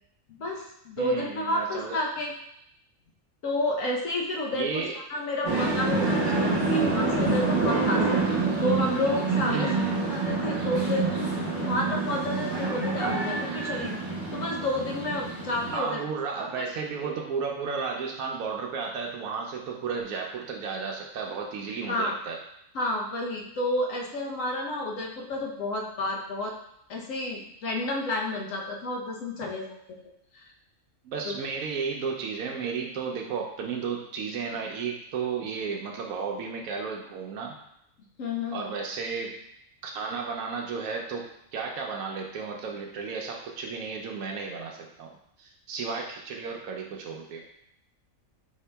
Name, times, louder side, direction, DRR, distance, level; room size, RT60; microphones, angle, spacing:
voice 1, 0.4-2.3 3.4-9.8 10.1-11.1 11.6-14.0 14.3-16.0 16.6-16.7 21.9-22.1 22.7-26.6 26.9-29.7 30.3-30.5 31.3-31.4 33.1-33.3 38.2-38.6, left 1 dB, 70° left, 0 dB, 1.1 m, -30 dB
voice 2, 1.0-2.0 4.5-5.0 9.5-10.3 15.7-22.4 31.0-37.5 38.5-39.3 39.8-41.3 41.5-45.1 45.4-47.4, right 5 dB, 85° right, 0 dB, 1.0 m, -33 dB
sound 1, 5.4-15.8, right 3 dB, 35° right, 1.3 m, -27 dB
5.5 x 2.8 x 3.3 m, 0.77 s
omnidirectional pair, 1.4 m